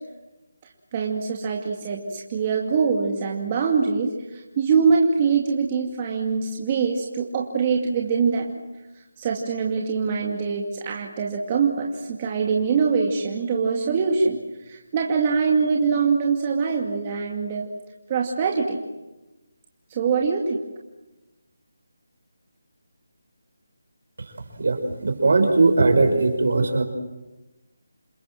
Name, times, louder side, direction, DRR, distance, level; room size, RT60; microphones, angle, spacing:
voice 1, 0.9-8.5 9.2-17.7 18.1-18.8 19.9-20.6, right 5 dB, 25° right, 0 dB, 2.3 m, -23 dB
voice 2, 24.6-26.8, right 3 dB, 65° right, 6 dB, 5.5 m, -19 dB
28.5 x 21.5 x 7.7 m, 1.1 s
figure-of-eight pair, 165°, 0 cm